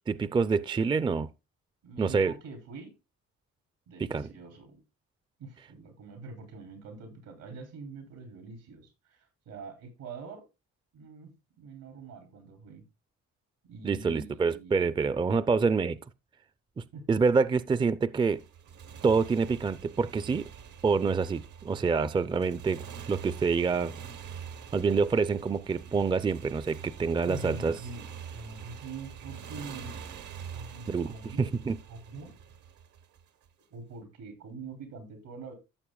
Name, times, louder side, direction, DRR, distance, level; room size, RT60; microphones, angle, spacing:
voice 1, 0.1-1.3 2.0-2.3 4.0-4.3 13.8-16.0 16.8-18.4 19.0-20.5 20.8-22.8 23.1-23.9 24.7-27.8 30.9-31.1 31.4-31.8, right 5 dB, 15° right, 0.4 m, -26 dB
voice 2, 1.8-2.9 3.9-4.8 5.4-10.5 10.9-12.8 13.7-14.9 16.9-17.0 21.7-21.8 27.3-30.0 30.5-31.5 31.9-32.4 33.7-35.5, right 4 dB, 90° right, 3.3 m, -44 dB
Motorcycle, 18.3-33.5, right 7 dB, 75° right, 1.1 m, -45 dB
14.0 x 6.7 x 2.3 m
cardioid pair, 90°, 30 cm